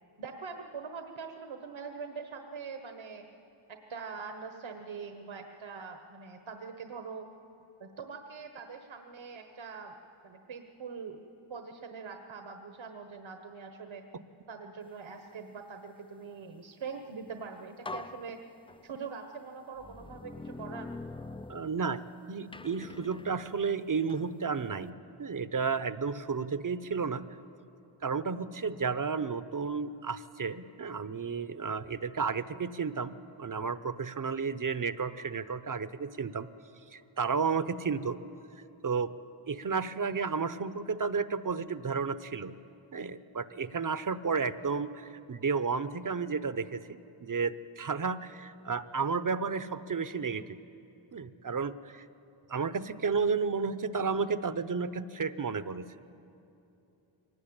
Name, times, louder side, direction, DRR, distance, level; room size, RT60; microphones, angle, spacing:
voice 1, 0.2-3.3 3.7-7.3 7.8-9.9 10.2-11.2 11.5-14.0 14.5-18.4 18.8-20.9 21.8-21.9, right 5 dB, 70° right, 5 dB, 1.3 m, -43 dB
sound 1, 17.3-17.4 17.8-19.1 19.8-22.1 22.5-24.3, left 3 dB, 10° left, 0.4 m, -44 dB
voice 2, 21.5-22.0 22.3-24.9 25.2-27.2 28.0-36.5 36.9-38.2 38.8-39.1 39.5-42.5 42.9-46.9 47.2-50.6 51.1-52.1 52.5-55.8, right 5 dB, 40° right, 14 dB, 0.9 m, -32 dB
23.0 x 19.0 x 8.8 m, 2.8 s
cardioid pair, 60°, 48 cm